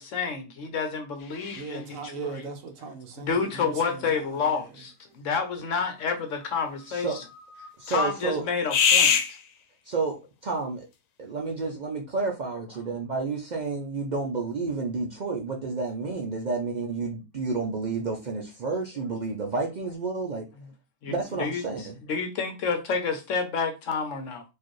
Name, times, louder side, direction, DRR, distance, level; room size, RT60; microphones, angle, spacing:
voice 1, 0.0-2.1 3.2-7.2 7.9-9.2 20.6-20.7 21.0-24.4, left 5 dB, 65° left, 0.9 m, -29 dB
sound 1, 1.2-1.9 4.7-4.8 5.4-5.5 5.7-8.4 8.7-9.6, left 7 dB, 90° left, 1.2 m, -27 dB
voice 2, 1.5-4.7, right 4 dB, 60° right, 1.1 m, -39 dB
voice 3, 6.9-7.2 7.8-8.4 9.9-10.9 11.3-20.5 21.1-21.9, right 4 dB, 80° right, 0.4 m, -30 dB
4.6 x 2.5 x 3.0 m
omnidirectional pair, 1.6 m